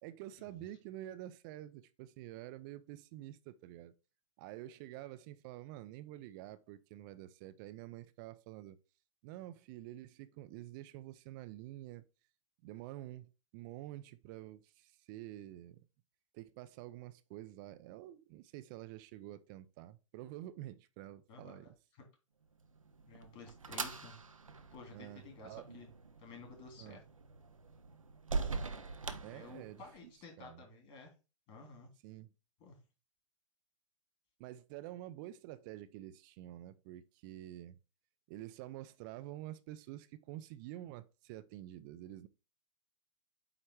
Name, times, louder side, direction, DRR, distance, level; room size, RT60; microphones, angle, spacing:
voice 1, 0.0-3.9 4.4-8.8 9.2-12.1 12.6-15.8 16.3-21.7 24.9-25.7 26.8-27.0 29.2-30.1 30.4-30.6 32.0-32.3 34.4-37.8 38.3-42.3, right 14 dB, 40° right, 0.6 m, -48 dB
voice 2, 21.3-21.7 23.1-24.1 24.7-25.9 26.2-27.0 29.3-31.1 31.5-31.9 32.6-32.8, left 4 dB, 35° left, 3.1 m, -53 dB
sound 1, 22.7-30.1, right 4 dB, 90° right, 0.9 m, -43 dB
8.8 x 3.3 x 4.6 m
figure-of-eight pair, 110°, 17 cm